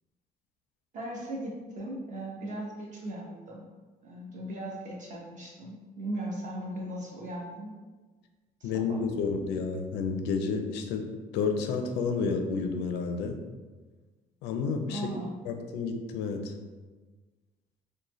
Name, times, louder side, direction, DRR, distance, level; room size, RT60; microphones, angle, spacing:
voice 1, 0.9-3.6 4.0-7.8 8.6-9.0 14.9-15.3, right 1 dB, 45° right, -3 dB, 1.0 m, -38 dB
voice 2, 8.6-11.0 11.3-13.4 14.4-15.0 15.5-16.5, left 5 dB, 90° left, 5 dB, 0.4 m, -30 dB
3.9 x 2.1 x 3.0 m, 1.3 s
cardioid pair, 110°, 17 cm